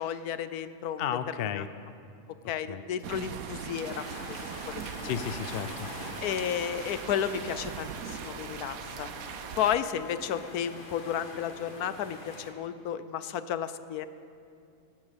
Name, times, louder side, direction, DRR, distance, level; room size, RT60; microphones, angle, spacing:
voice 1, 0.0-1.0 1.5-1.6 2.5-5.1 6.2-9.1 9.6-14.1, left 9 dB, 80° left, 13 dB, 1.2 m, -33 dB
voice 2, 1.0-1.7 2.7-2.9 5.0-5.9, left 9 dB, 55° left, 12 dB, 0.7 m, -33 dB
sound 1, 3.0-9.8, right 9 dB, 70° right, 1.1 m, -40 dB
sound 2, 3.8-12.5, left 2 dB, 35° left, 1.8 m, -44 dB
18.5 x 10.5 x 7.3 m, 2.5 s
omnidirectional pair, 1.6 m